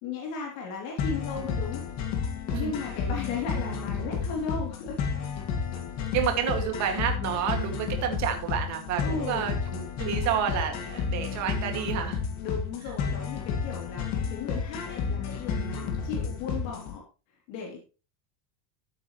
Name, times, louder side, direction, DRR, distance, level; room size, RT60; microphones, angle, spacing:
voice 1, 0.0-1.8 2.6-5.0 6.4-6.5 9.0-9.5 12.4-17.0 17.5-17.8, left 5 dB, 60° left, -1 dB, 3.1 m, -36 dB
sound 1, 1.0-17.0, left 6 dB, 35° left, 2.0 m, -31 dB
voice 2, 6.1-12.2, right 8 dB, 40° right, 4 dB, 2.2 m, -30 dB
13.5 x 8.6 x 3.1 m, 0.32 s
cardioid pair, 170°, 44 cm